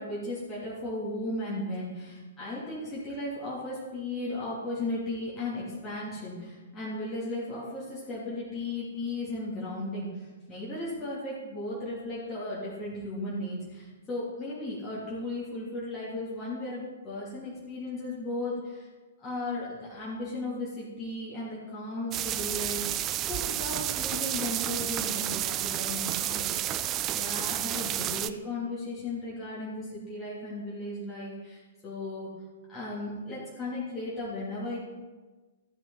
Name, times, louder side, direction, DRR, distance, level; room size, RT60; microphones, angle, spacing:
voice 1, 0.0-18.9 19.2-32.3 32.7-34.8, left 2 dB, 15° left, -9 dB, 3.1 m, -36 dB
sound 1, 22.1-28.3, right 13 dB, 25° right, 0.4 m, -31 dB
14.0 x 7.5 x 4.1 m, 1.3 s
figure-of-eight pair, 115°, 0 cm